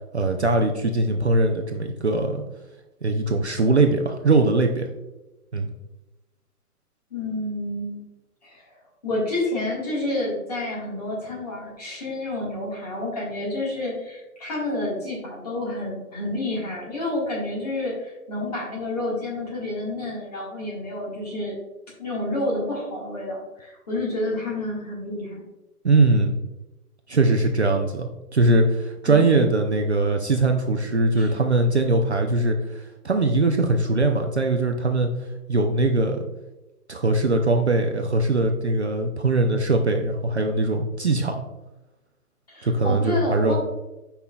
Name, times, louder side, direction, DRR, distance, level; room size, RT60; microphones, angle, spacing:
voice 1, 0.1-2.4 3.0-4.9 5.5-5.7 25.8-26.3 27.1-35.1 35.5-36.3 36.9-41.4 42.6-43.6, right 2 dB, 45° right, 3 dB, 0.5 m, -21 dB
voice 2, 7.1-8.0 8.4-8.7 9.0-21.5 22.0-25.4 29.1-29.5 31.1-31.3 42.5-43.6, left 1 dB, 25° left, -4 dB, 1.7 m, -29 dB
8.4 x 5.6 x 2.3 m, 1.0 s
hypercardioid pair, 180°, 46 cm